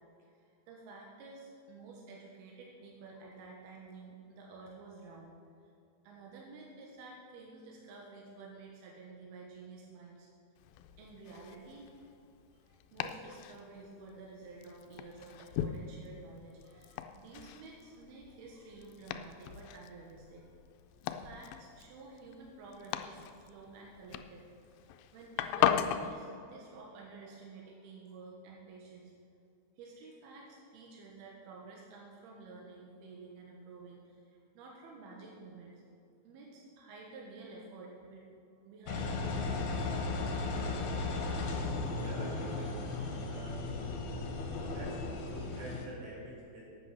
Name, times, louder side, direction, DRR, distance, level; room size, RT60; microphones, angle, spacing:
voice 1, 0.3-5.4 6.0-10.3 11.0-12.1 12.5-20.5 21.1-24.4 25.1-29.1 29.8-38.3 38.7-40.0, right 3 dB, 85° right, -2 dB, 3.3 m, -51 dB
Domestic sounds home sounds, 10.6-26.1, left 10 dB, 80° left, 2.2 m, -39 dB
Engine, 38.9-45.9, left 3 dB, 60° left, 2.1 m, -36 dB
voice 2, 41.9-43.6 44.7-46.7, right 1 dB, 55° right, -5 dB, 3.9 m, -47 dB
12.5 x 8.4 x 5.6 m, 2.6 s
omnidirectional pair, 4.4 m